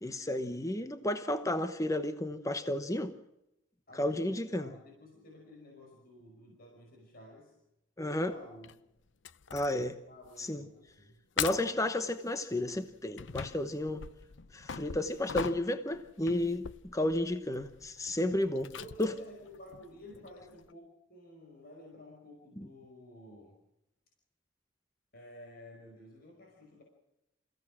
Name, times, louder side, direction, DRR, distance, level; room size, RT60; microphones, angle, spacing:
voice 1, 0.0-3.2 4.0-4.7 8.0-8.3 9.5-10.0 10.4-10.6 11.4-14.0 14.5-18.7 19.0-19.1 22.6-22.7, left 1 dB, 15° left, 1.0 m, -32 dB
voice 2, 3.9-7.5 8.3-8.7 10.1-11.2 17.5-17.9 18.7-23.6 25.1-26.8, left 1 dB, 50° left, 5.5 m, -52 dB
sound 1, 8.6-8.7 9.2-9.9 10.2-10.5 10.9-11.0 11.4-11.8 12.6-20.7, left 7 dB, 75° left, 0.7 m, -42 dB
29.0 x 16.0 x 6.1 m
head